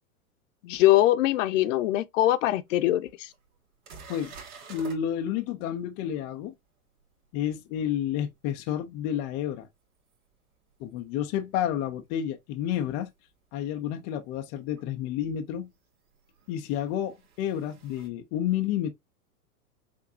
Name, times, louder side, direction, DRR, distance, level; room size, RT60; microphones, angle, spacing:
voice 1, 0.6-3.3, left 15 dB, 55° left, 0.7 m, -22 dB
sound 1, 2.7-2.8 3.3-3.4 3.8-5.0 10.1-10.2 13.0-13.1 14.8-14.9 16.2-18.1, right 5 dB, 70° right, 2.0 m, -48 dB
voice 2, 4.7-6.5 7.3-9.7 10.8-13.1 13.5-15.7 16.5-18.9, left 10 dB, 25° left, 0.4 m, -30 dB
6.0 x 2.6 x 2.5 m
hypercardioid pair, 120°, 45 cm